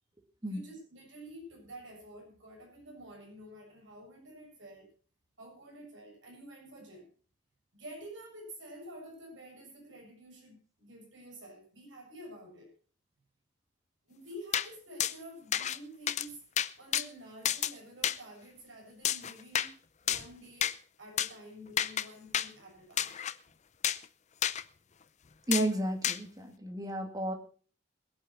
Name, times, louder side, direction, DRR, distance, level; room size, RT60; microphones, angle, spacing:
voice 1, 0.4-4.9 5.4-7.1 7.7-12.7 14.1-16.4 16.8-19.8 20.0-23.2, right 1 dB, 85° right, 0 dB, 7.0 m, -49 dB
sound 1, 14.5-14.7 15.0-15.1 15.5-15.8 16.1-16.3 16.6-17.1 17.4-17.7 18.0-18.2 19.0-19.7 20.1-20.3 20.6-20.7 21.2-21.3 21.8-22.1 22.3-22.5 23.0-23.3 23.8-24.0 24.4-24.6 25.5-25.7 26.0-26.2, left 10 dB, 40° left, 0.5 m, -30 dB
voice 2, 25.5-27.3, right 1 dB, 20° right, 4 dB, 2.4 m, -32 dB
21.5 x 8.5 x 4.5 m, 0.39 s
head